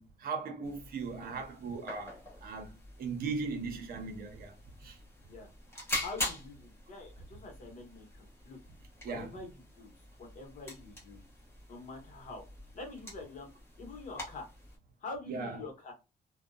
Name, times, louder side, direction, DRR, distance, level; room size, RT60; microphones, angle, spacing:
voice 1, 0.0-4.6 4.8-5.0 9.0-9.4 15.3-15.6, right 4 dB, 65° right, 0.7 m, -38 dB
sound 1, 0.6-14.8, left 1 dB, 15° left, 1.0 m, -44 dB
voice 2, 6.0-8.6 9.1-9.9 10.2-11.2 11.7-12.4 12.7-13.5 13.8-14.5 15.0-15.9, left 3 dB, 50° left, 1.1 m, -45 dB
2.6 x 2.2 x 2.2 m
cardioid pair, 180°, 17 cm